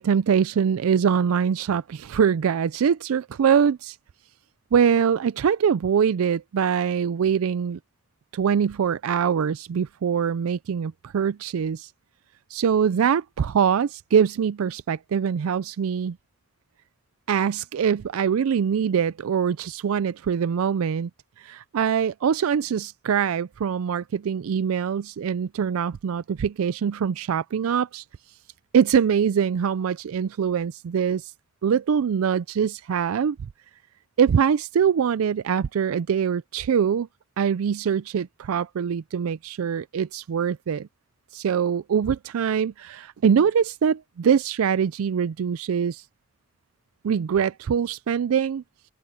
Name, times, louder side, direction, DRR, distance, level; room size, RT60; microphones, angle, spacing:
voice 1, 0.0-4.0 4.7-7.8 8.3-11.9 12.5-16.2 17.3-21.1 21.4-28.0 28.7-31.3 31.6-33.4 34.2-37.1 37.4-40.9 41.3-46.0 47.0-48.6, right 7 dB, 85° right, 0.4 m, -23 dB
open air
head